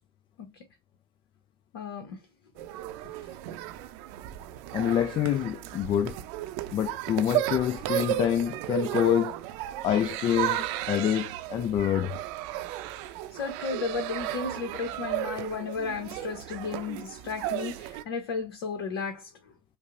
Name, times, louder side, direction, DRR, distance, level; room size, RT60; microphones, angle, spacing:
voice 1, 1.7-2.2 3.2-3.3 13.3-19.3, left 5 dB, 75° left, 0.7 m, -34 dB
sound 1, 2.6-18.0, right 13 dB, 70° right, 0.5 m, -34 dB
voice 2, 4.7-6.2 6.7-9.4 9.8-12.2, left 10 dB, 40° left, 0.4 m, -26 dB
5.3 x 2.0 x 2.5 m
hypercardioid pair, 75°, 13 cm